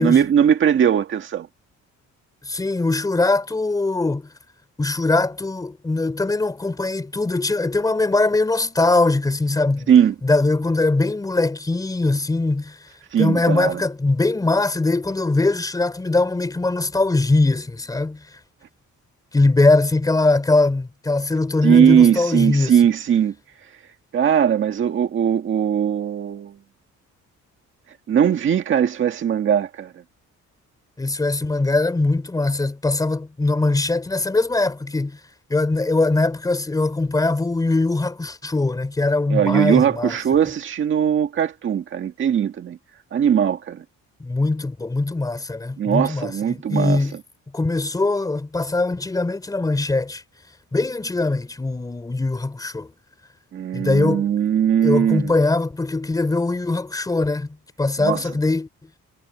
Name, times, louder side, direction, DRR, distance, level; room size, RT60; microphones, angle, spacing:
voice 1, 0.0-1.5 9.9-10.2 13.1-13.8 21.6-23.3 24.1-26.6 28.1-29.9 39.3-42.8 43.1-43.8 45.8-47.0 53.5-55.3 58.0-58.3, right 8 dB, 40° right, 1.9 m, -19 dB
voice 2, 2.4-4.3 4.8-9.9 10.2-12.8 13.2-18.2 19.3-22.7 31.0-35.2 35.5-40.2 44.2-47.1 47.5-50.2 50.7-52.9 53.7-54.3 54.8-58.7, left 2 dB, 10° left, 3.9 m, -21 dB
cardioid pair, 175°, 30 cm